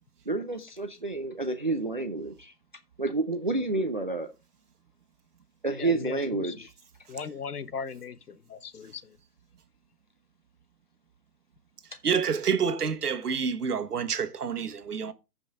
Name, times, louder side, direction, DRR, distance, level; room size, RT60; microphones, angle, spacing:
voice 1, 0.3-2.5 3.0-4.3 5.6-6.7, right 2 dB, 30° right, 0.5 m, -29 dB
voice 2, 5.8-6.7 7.1-9.2, left 6 dB, 65° left, 1.1 m, -38 dB
voice 3, 12.0-15.1, right 6 dB, 65° right, 1.4 m, -28 dB
14.5 x 5.3 x 3.6 m
hypercardioid pair, 160°, 50 cm